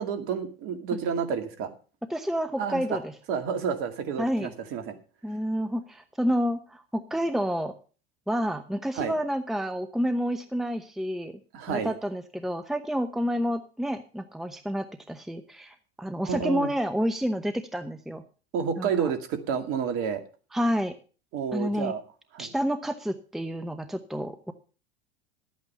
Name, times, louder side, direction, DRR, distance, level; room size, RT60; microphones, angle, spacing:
voice 1, 0.0-1.7 2.6-3.0 3.3-5.0 8.9-9.2 11.5-11.9 16.2-16.7 18.5-20.2 21.3-22.0 22.3-22.5, right 6 dB, 45° right, 7 dB, 2.2 m, -30 dB
voice 2, 2.1-3.0 4.2-4.5 5.2-7.7 8.3-11.4 11.7-18.2 18.8-19.1 20.5-20.9 21.5-21.9 22.4-24.5, equal, ahead, 8 dB, 0.9 m, -29 dB
12.5 x 8.6 x 5.6 m, 0.37 s
figure-of-eight pair, 80°, 30 cm